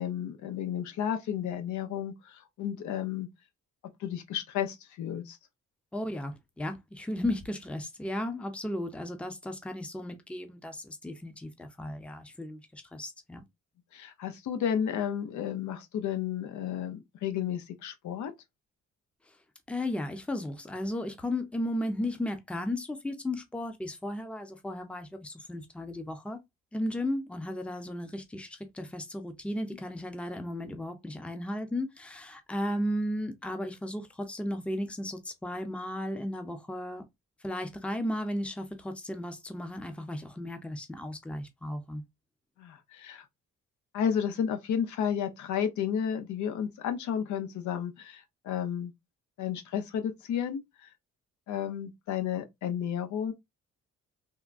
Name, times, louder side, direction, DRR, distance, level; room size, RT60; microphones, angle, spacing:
voice 1, 0.0-3.3 4.0-5.4 13.9-18.3 42.6-43.2 43.9-48.9 49.4-50.9 51.5-53.3, left 8 dB, 75° left, 0.7 m, -32 dB
voice 2, 5.9-13.4 19.7-26.4 26.7-37.0 37.4-42.0, left 1 dB, 5° left, 0.6 m, -35 dB
3.5 x 2.2 x 2.5 m
cardioid pair, 90°, 30 cm